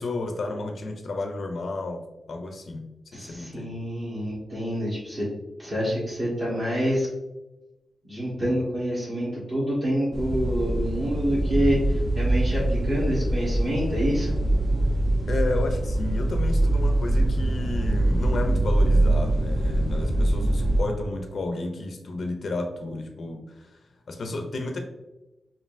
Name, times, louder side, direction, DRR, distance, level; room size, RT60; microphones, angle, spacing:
voice 1, 0.0-2.9 3.1-3.8 15.3-23.8 24.1-24.8, left 2 dB, 50° left, 4 dB, 0.4 m, -32 dB
voice 2, 3.1-5.3 5.6-7.1 8.0-14.3, equal, 30° right, -8 dB, 1.2 m, -27 dB
sound 1, 10.1-20.8, right 1 dB, 50° right, 0.7 m, -23 dB
5.3 x 2.6 x 2.5 m, 1.0 s
wide cardioid pair, 175°, 0 cm